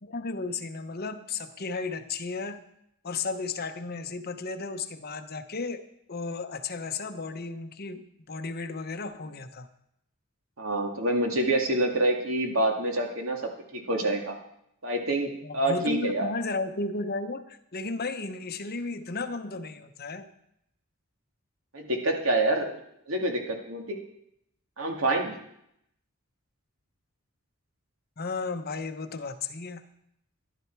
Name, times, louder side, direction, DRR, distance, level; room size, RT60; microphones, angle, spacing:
voice 1, 0.0-2.6 3.0-5.8 6.1-9.7 15.4-20.3 28.2-29.9, left 3 dB, 50° left, 8 dB, 0.9 m, -34 dB
voice 2, 10.6-13.4 13.7-14.4 14.8-16.3 21.7-22.7 23.1-24.0 24.8-25.3, right 1 dB, 90° right, 2 dB, 2.2 m, -27 dB
14.5 x 11.5 x 4.6 m, 0.77 s
head